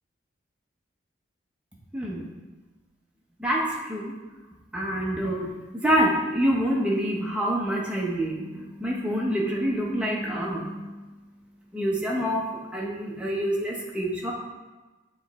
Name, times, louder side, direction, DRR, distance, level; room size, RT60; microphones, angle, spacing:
voice 1, 1.9-2.3 3.4-4.1 4.7-5.5 5.8-10.9 11.7-12.5 12.7-14.3, equal, 5° right, -3 dB, 0.8 m, -26 dB
7.6 x 3.2 x 4.1 m, 1.2 s
head